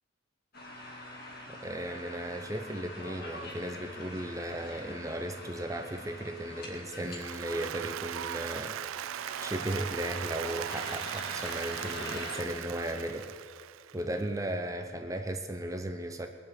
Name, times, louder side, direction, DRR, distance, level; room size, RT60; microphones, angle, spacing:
sound 1, 0.5-7.2 7.4-7.5 7.7-12.4, left 1 dB, 50° left, 2.4 m, -44 dB
voice 1, 1.5-8.8 9.4-13.5 13.9-16.3, right 1 dB, 15° right, 5 dB, 0.7 m, -36 dB
Applause, 6.9-14.1, right 11 dB, 85° right, 0.3 m, -39 dB
21.0 x 7.4 x 8.1 m, 2.1 s
head